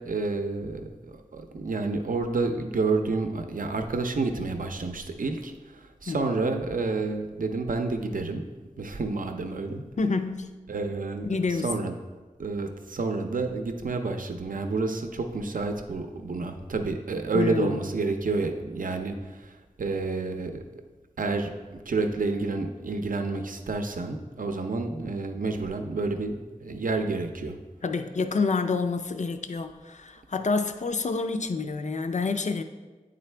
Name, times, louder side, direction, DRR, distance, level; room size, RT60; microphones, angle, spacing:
voice 1, 0.0-8.4 8.8-10.3 10.7-12.0 12.4-20.6 21.2-27.6, right 3 dB, 80° right, 6 dB, 0.5 m, -29 dB
voice 2, 10.0-10.6 11.2-11.8 17.3-17.8 27.8-32.6, left 4 dB, 60° left, 8 dB, 0.4 m, -28 dB
8.8 x 3.8 x 3.3 m, 1.3 s
wide cardioid pair, 60°, 14 cm